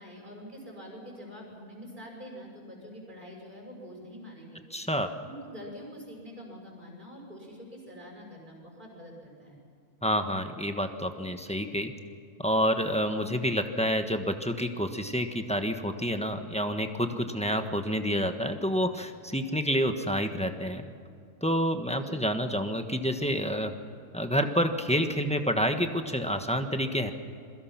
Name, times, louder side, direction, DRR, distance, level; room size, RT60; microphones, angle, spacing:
voice 1, 0.0-4.6 5.2-9.6 21.8-22.2, equal, 30° right, -1 dB, 6.7 m, -45 dB
voice 2, 4.7-5.1 10.0-11.9 12.4-20.9 21.4-23.7 24.1-27.1, equal, 5° left, 6 dB, 1.2 m, -28 dB
27.5 x 22.5 x 6.0 m, 2.4 s
omnidirectional pair, 1.5 m